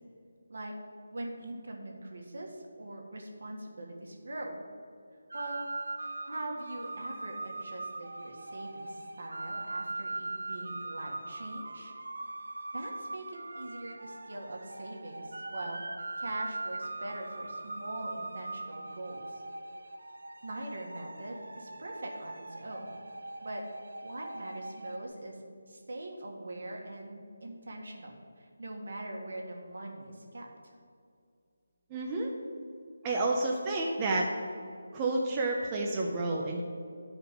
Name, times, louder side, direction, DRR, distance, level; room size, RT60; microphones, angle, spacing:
voice 1, 1.1-4.6 5.3-5.7 6.3-11.9 12.7-15.8 16.2-19.4 20.4-23.0 23.4-25.4 25.7-30.5, right 1 dB, 65° right, 0 dB, 1.6 m, -42 dB
sound 1, 5.3-25.1, right 2 dB, 90° right, 0.6 m, -41 dB
voice 2, 31.9-32.3 33.0-34.3 34.9-36.6, right 2 dB, 15° right, -2 dB, 0.6 m, -30 dB
10.5 x 4.9 x 5.2 m, 2.4 s
figure-of-eight pair, 170°, 0 cm